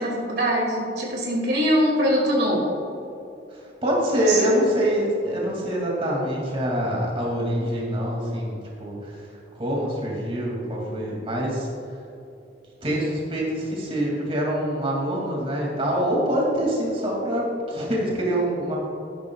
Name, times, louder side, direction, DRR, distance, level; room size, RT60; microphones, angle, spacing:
voice 1, 0.0-2.6 4.3-4.6, equal, 65° right, -2 dB, 2.3 m, -22 dB
voice 2, 3.5-9.2 9.5-11.7 12.8-18.8, equal, 35° right, -3 dB, 2.4 m, -25 dB
13.5 x 11.0 x 2.4 m, 2.8 s
head